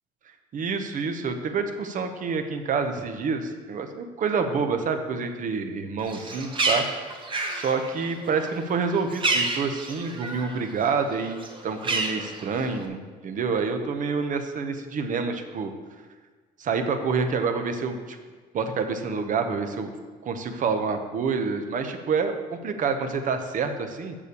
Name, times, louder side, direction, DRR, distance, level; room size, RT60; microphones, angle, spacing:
voice 1, 0.5-6.9 7.5-11.4 11.6-15.7 16.6-18.2 18.5-19.9 20.2-22.3 22.6-24.2, right 5 dB, 50° right, 7 dB, 1.1 m, -27 dB
Bird, 6.0-10.6 10.9-12.8, right 2 dB, 30° right, 1.4 m, -29 dB
7.3 x 7.0 x 6.9 m, 1.4 s
cardioid pair, 110°, 17 cm